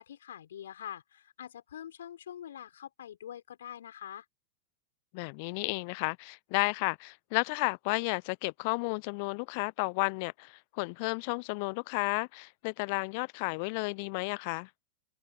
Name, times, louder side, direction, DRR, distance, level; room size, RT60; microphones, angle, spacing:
voice 1, 0.0-4.2, left 10 dB, 65° left, 4.8 m, -45 dB
voice 2, 5.1-14.7, left 32 dB, 50° left, 0.6 m, -32 dB
figure-of-eight pair, 90°, 0 cm